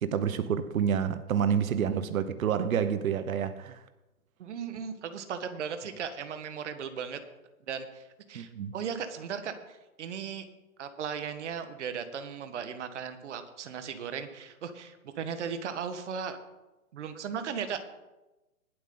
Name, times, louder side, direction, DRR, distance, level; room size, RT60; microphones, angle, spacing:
voice 1, 0.0-3.8 8.3-8.7, right 8 dB, 70° right, 1.0 m, -28 dB
voice 2, 4.4-7.2 7.7-10.5 10.8-16.4 16.9-17.8, right 7 dB, 55° right, 1.5 m, -37 dB
19.5 x 7.8 x 3.9 m
hypercardioid pair, 160°, 43 cm